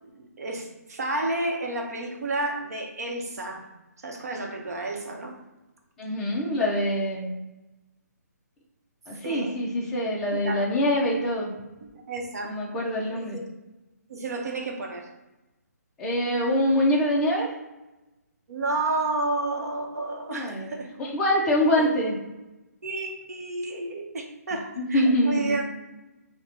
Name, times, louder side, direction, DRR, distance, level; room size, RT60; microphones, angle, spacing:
voice 1, 0.0-3.7 4.0-5.4 9.2-9.6 10.3-10.6 11.8-12.6 13.1-13.3 14.1-15.1 18.5-20.9 21.8-21.9 22.8-25.6, right 2 dB, 65° right, 2 dB, 0.8 m, -31 dB
voice 2, 6.0-7.3 9.1-11.5 12.4-13.4 16.0-17.5 20.3-20.7 21.0-22.2 24.8-25.6, left 1 dB, 5° left, -5 dB, 0.4 m, -24 dB
4.6 x 2.1 x 2.7 m, 1.0 s
hypercardioid pair, 165°, 9 cm